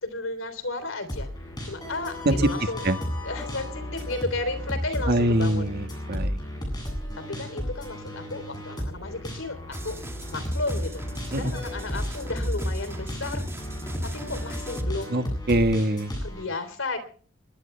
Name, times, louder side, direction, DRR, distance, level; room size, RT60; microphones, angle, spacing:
voice 1, 0.0-1.3 1.6-2.9 3.2-5.7 7.2-10.0 10.3-13.4 14.0-15.2 16.2-17.0, left 3 dB, 75° left, 11 dB, 3.5 m, -33 dB
sound 1, 1.1-16.4, equal, 20° left, 7.9 m, -33 dB
voice 2, 5.1-6.4 11.3-11.5 15.1-16.1, right 1 dB, 55° right, 7 dB, 1.6 m, -24 dB
sound 2, 9.7-14.8, right 1 dB, 15° right, 2.2 m, -38 dB
23.0 x 21.0 x 2.3 m, 0.42 s
head